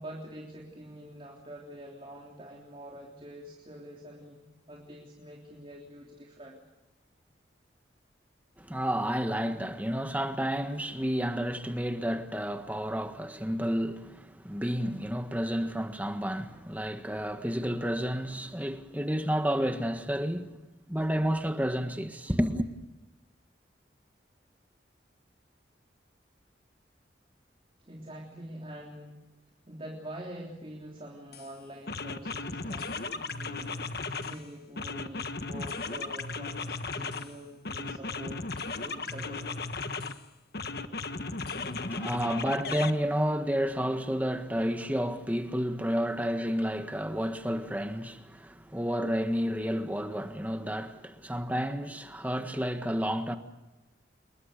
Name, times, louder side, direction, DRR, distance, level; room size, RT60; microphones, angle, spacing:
voice 1, 0.0-6.6 27.8-29.2 29.7-38.4 38.8-39.5, right 1 dB, 30° right, 3.5 m, -45 dB
voice 2, 8.6-20.6 20.9-22.7 41.7-53.4, equal, 10° right, 1.6 m, -31 dB
sound 1, 31.3-31.5 31.9-34.4 34.8-37.3 37.7-40.2 40.5-42.9, left 3 dB, 55° left, 1.4 m, -36 dB
28.0 x 22.0 x 6.7 m
head